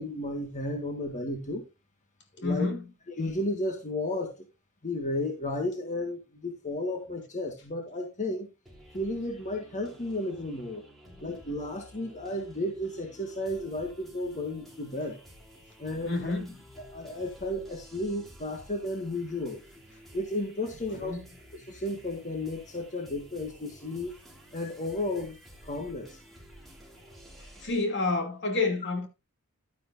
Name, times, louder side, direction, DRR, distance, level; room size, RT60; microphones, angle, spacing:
voice 1, 0.0-1.6 2.4-2.7 3.2-4.5 4.8-8.5 8.9-10.8 11.2-15.2 15.8-16.3 16.9-19.6 20.1-21.2 21.7-24.1 24.5-25.4 25.6-26.2, left 1 dB, 35° left, 1.6 m, -33 dB
voice 2, 2.4-2.8 11.1-11.2 16.0-16.6 20.9-21.2 27.6-29.1, left 3 dB, 55° left, 2.6 m, -29 dB
sound 1, 8.7-27.9, equal, ahead, 3.5 m, -52 dB
11.5 x 10.0 x 2.6 m
head